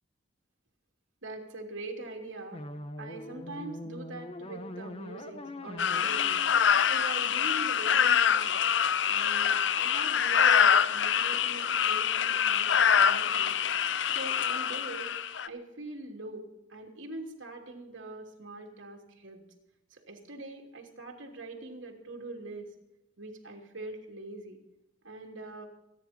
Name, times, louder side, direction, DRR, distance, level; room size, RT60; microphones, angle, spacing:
voice 1, 1.2-2.6 3.0-6.4 6.9-8.6 9.1-13.5 14.1-15.1 15.5-19.4 19.9-22.7 23.2-24.6 25.0-25.7, right 2 dB, 90° right, 1 dB, 3.1 m, -43 dB
sound 1, 2.5-7.6, left 1 dB, 30° left, 1.1 m, -43 dB
sound 2, 5.8-15.5, left 8 dB, 70° left, 0.6 m, -25 dB
26.5 x 10.0 x 4.4 m, 0.95 s
head